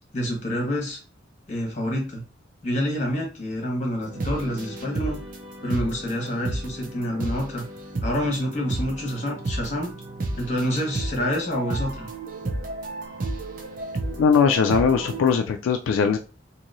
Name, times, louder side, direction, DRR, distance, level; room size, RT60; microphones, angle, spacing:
voice 1, 0.1-1.0 1.5-2.2 2.6-5.2 5.6-7.6 8.0-9.9 10.4-12.1, equal, 40° left, 0 dB, 1.2 m, -27 dB
sound 1, 4.0-15.4, right 2 dB, 45° right, 0.5 m, -32 dB
voice 2, 14.2-16.2, left 6 dB, 85° left, 5 dB, 0.3 m, -20 dB
3.0 x 2.7 x 2.5 m, 0.34 s
head